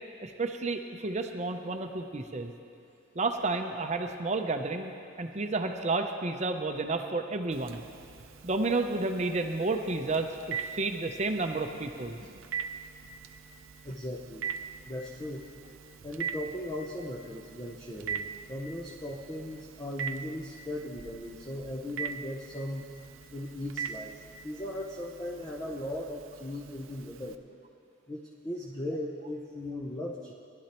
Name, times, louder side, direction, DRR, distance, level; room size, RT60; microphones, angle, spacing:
voice 1, 0.2-2.5 3.1-4.9 5.2-7.8 8.4-12.2, right 3 dB, 35° right, 5 dB, 0.6 m, -31 dB
Telephone, 7.5-27.3, right 7 dB, 75° right, 0.5 m, -42 dB
voice 2, 13.8-14.4 14.8-15.5 16.0-22.9 23.3-27.4 28.1-30.3, left 1 dB, 20° left, -3 dB, 0.7 m, -38 dB
19.5 x 11.5 x 3.0 m, 2.6 s
head